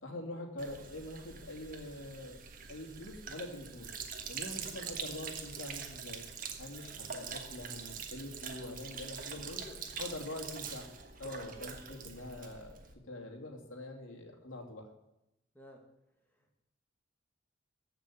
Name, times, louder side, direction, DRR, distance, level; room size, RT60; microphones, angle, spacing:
voice 1, 0.0-2.4 2.7-3.9 4.3-6.2 6.6-9.6 10.0-10.8 11.2-12.8 13.1-14.9, left 1 dB, 85° left, 2 dB, 2.8 m, -44 dB
Sink (filling or washing), 0.6-12.9, right 6 dB, 45° right, 1.4 m, -44 dB
voice 2, 9.2-9.8 11.6-11.8 15.5-15.8 16.3-16.6, left 1 dB, 10° left, 1 dB, 2.1 m, -56 dB
14.5 x 5.9 x 9.9 m, 0.87 s
head